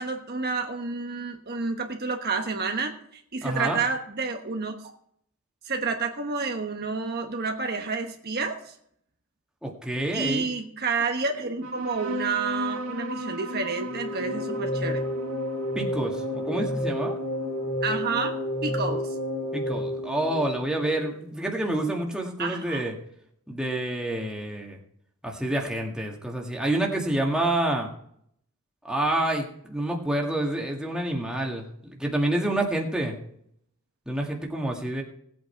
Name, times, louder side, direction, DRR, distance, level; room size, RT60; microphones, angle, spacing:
voice 1, 0.0-4.8 5.6-8.7 10.1-15.1 17.8-19.1 22.4-22.8, right 4 dB, 45° right, 4 dB, 1.2 m, -30 dB
voice 2, 3.4-3.8 9.6-10.5 15.8-17.1 19.5-22.9 23.5-24.8 25.2-27.9 28.8-33.2 34.1-35.0, right 1 dB, 5° right, -1 dB, 1.9 m, -28 dB
sound 1, 11.6-18.6, equal, 85° right, 2.4 m, -37 dB
sound 2, 13.9-21.1, left 1 dB, 45° left, 2.3 m, -30 dB
18.0 x 8.6 x 4.5 m, 0.69 s
head